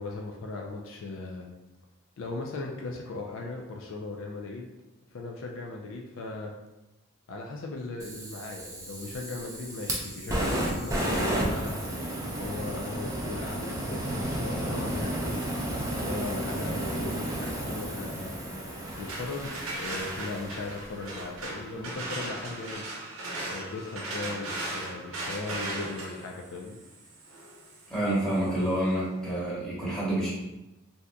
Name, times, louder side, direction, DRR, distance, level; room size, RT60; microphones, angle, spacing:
voice 1, 0.0-1.5 2.2-4.7 5.1-6.5 7.3-11.8 12.4-15.4 16.0-18.4 18.8-22.8 23.4-26.8, left 3 dB, 65° left, 1 dB, 0.4 m, -38 dB
Fire, 8.0-21.1, right 1 dB, 15° right, 0.4 m, -32 dB
sound 1, 18.8-28.6, right 2 dB, 85° right, 0.7 m, -38 dB
voice 2, 27.9-30.3, right 1 dB, 5° left, -9 dB, 1.0 m, -28 dB
3.6 x 2.7 x 2.2 m, 0.99 s
head